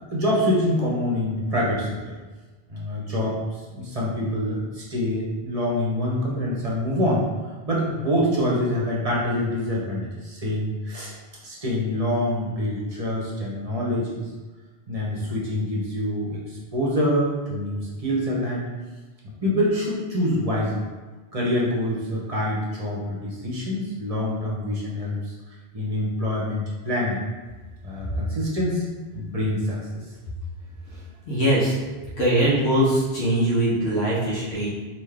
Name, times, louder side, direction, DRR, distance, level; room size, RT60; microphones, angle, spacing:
voice 1, 0.1-2.2 2.7-7.3 7.7-11.1 11.4-14.3 14.9-18.6 19.4-20.8 21.3-27.2 27.8-28.8 29.1-30.0, left 1 dB, 40° right, -5 dB, 0.8 m, -26 dB
voice 2, 31.3-31.7 32.2-34.7, right 1 dB, 80° left, -7 dB, 1.1 m, -21 dB
3.7 x 2.6 x 3.3 m, 1.3 s
omnidirectional pair, 1.1 m